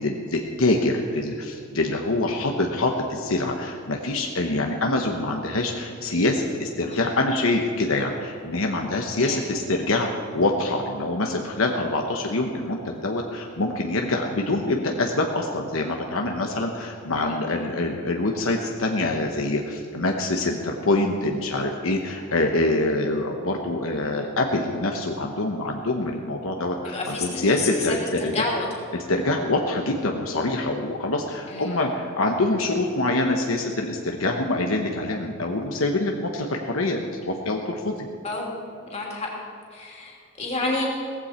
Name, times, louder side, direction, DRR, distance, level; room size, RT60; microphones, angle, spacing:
voice 1, 0.0-10.1 10.3-28.3 28.9-38.1, left 2 dB, 75° left, 2 dB, 1.1 m, -25 dB
voice 2, 26.8-28.7 31.5-31.9 38.2-38.5 38.9-39.3 39.7-40.9, left 2 dB, 30° left, -2 dB, 2.9 m, -30 dB
17.5 x 15.0 x 4.4 m, 2.3 s
head